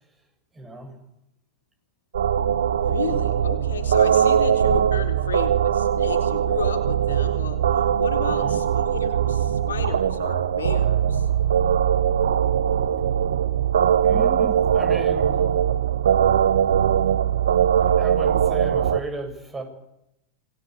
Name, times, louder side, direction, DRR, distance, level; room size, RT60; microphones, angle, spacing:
voice 1, 0.5-1.0 8.2-8.6 14.0-15.5 17.8-19.6, right 2 dB, 15° right, 5 dB, 7.8 m, -34 dB
sound 1, 2.1-19.0, right 9 dB, 65° right, 1.2 m, -21 dB
voice 2, 2.8-7.6 8.0-11.3, left 6 dB, 65° left, 5 dB, 3.9 m, -32 dB
27.5 x 21.0 x 8.3 m, 0.84 s
figure-of-eight pair, 90°, 0 cm